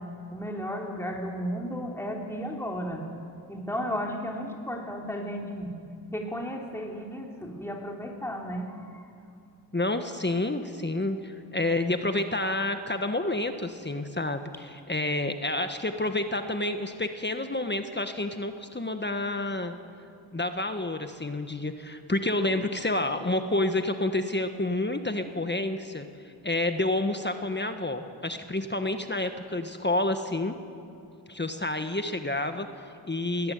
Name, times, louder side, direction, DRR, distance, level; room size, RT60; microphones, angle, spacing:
voice 1, 0.0-3.1 3.5-5.7 6.1-9.0, equal, 5° left, 0 dB, 3.0 m, -34 dB
voice 2, 9.7-19.7 20.3-30.5 31.3-33.5, left 2 dB, 25° left, 7 dB, 1.4 m, -29 dB
21.0 x 14.5 x 9.5 m, 2.5 s
cardioid pair, 50°, 42 cm